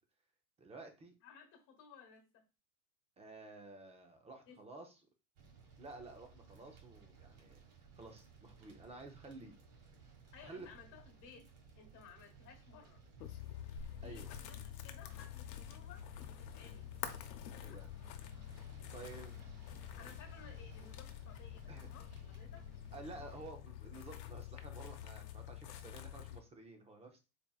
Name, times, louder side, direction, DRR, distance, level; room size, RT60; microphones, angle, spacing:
voice 1, 0.6-1.2 3.2-5.0 5.8-9.6 10.4-10.7 14.0-14.3 17.5-17.9 18.9-19.4 21.7-21.9 22.9-27.2, right 3 dB, 15° right, 0.5 m, -52 dB
voice 2, 1.2-2.4 4.5-4.6 10.3-11.5 11.7-13.0 14.0-16.9 17.6-17.8 20.0-23.3, left 6 dB, 40° left, 1.4 m, -58 dB
sound 1, 5.4-23.5, right 5 dB, 50° right, 1.6 m, -60 dB
sound 2, 13.2-26.4, left 11 dB, 85° left, 0.8 m, -48 dB
4.2 x 3.4 x 2.3 m
supercardioid pair, 130°, 49 cm